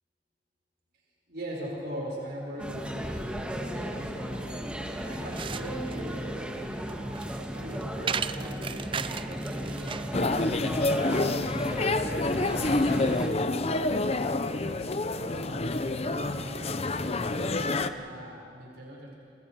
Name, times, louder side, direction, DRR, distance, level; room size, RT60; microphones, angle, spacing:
voice 1, 1.3-4.6 5.0-6.5 7.5-10.9 12.3-13.7 14.4-19.1, equal, 60° right, -3 dB, 5.1 m, -41 dB
sound 1, 2.6-13.3, equal, 5° right, 1.6 m, -35 dB
sound 2, 5.0-10.2, right 6 dB, 30° right, 0.5 m, -36 dB
sound 3, 10.1-17.9, left 2 dB, 35° left, 0.8 m, -28 dB
28.0 x 28.0 x 4.7 m, 2.5 s
head